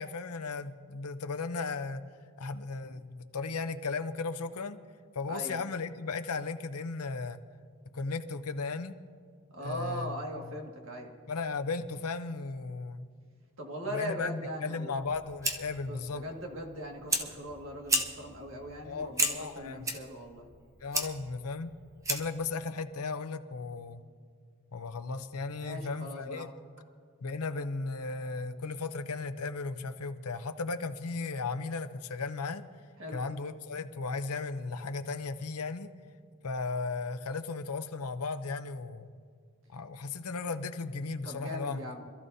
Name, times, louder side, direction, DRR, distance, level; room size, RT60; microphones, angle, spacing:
voice 1, 0.0-2.0 2.4-4.8 5.1-7.4 7.9-8.9 9.6-10.2 10.4-10.5 11.3-13.1 13.9-16.2 18.8-19.9 20.8-21.7 22.1-24.0 24.7-26.5 27.2-32.6 33.1-35.9 36.4-39.1 39.7-42.0, left 4 dB, 85° left, 9 dB, 0.7 m, -36 dB
voice 2, 9.5-11.1 13.6-14.9 15.9-20.5 25.6-26.5 33.0-33.2 41.2-42.0, equal, 60° right, 1 dB, 2.0 m, -40 dB
Fire, 15.0-22.5, right 2 dB, 15° right, 0.8 m, -35 dB
26.0 x 13.5 x 2.7 m, 2.1 s
head